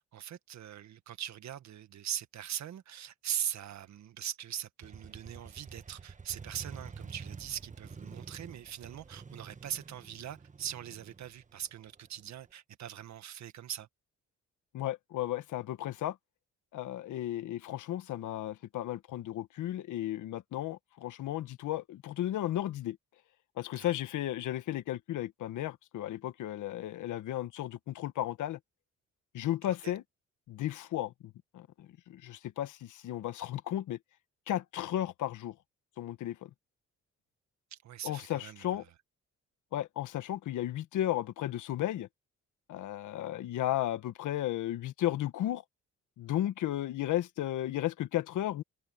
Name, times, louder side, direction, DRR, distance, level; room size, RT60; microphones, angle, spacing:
voice 1, 0.0-13.9 23.8-23.9 29.8-29.9 37.7-38.6, right 10 dB, 65° right, 1.7 m, -41 dB
Motorcycle, 4.8-12.5, right 5 dB, 25° right, 1.5 m, -48 dB
voice 2, 14.7-16.2 16.7-23.0 23.6-28.6 29.3-30.0 30.5-34.0 34.5-35.6 36.0-36.5 38.0-38.8 39.7-42.1 42.7-45.6 46.2-48.6, left 13 dB, 80° left, 1.5 m, -34 dB
cardioid pair, 90°, 30 cm